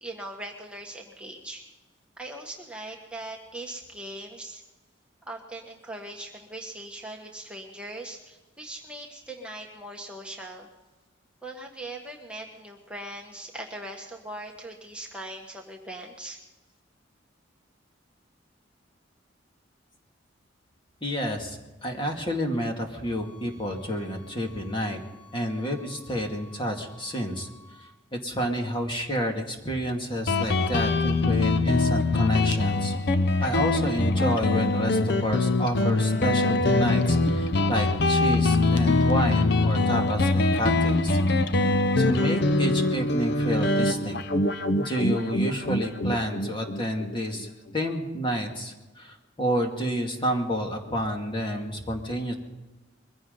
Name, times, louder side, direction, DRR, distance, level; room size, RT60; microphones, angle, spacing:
voice 1, 0.0-1.6 2.2-4.6 5.3-10.7 11.4-16.4, right 1 dB, 5° right, -1 dB, 1.4 m, -40 dB
voice 2, 21.0-25.0 25.3-27.5 28.1-32.9 33.4-41.2 42.0-44.2 44.8-47.5 47.7-52.3, equal, 25° left, 2 dB, 2.3 m, -29 dB
sound 1, 22.9-27.9, left 4 dB, 45° left, 6.6 m, -54 dB
Guitar, 30.3-47.5, left 2 dB, 60° left, 0.8 m, -23 dB
22.5 x 16.0 x 3.9 m, 1.1 s
head